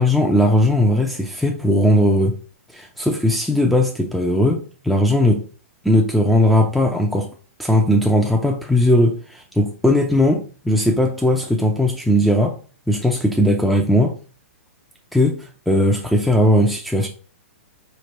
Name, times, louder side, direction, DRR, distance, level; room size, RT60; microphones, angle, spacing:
voice 1, 0.0-2.3 2.7-5.4 5.8-7.3 7.6-12.6 12.9-14.1 15.1-17.1, left 1 dB, ahead, 0.5 m, -18 dB
4.1 x 3.2 x 2.9 m
hypercardioid pair, 120°, 8 cm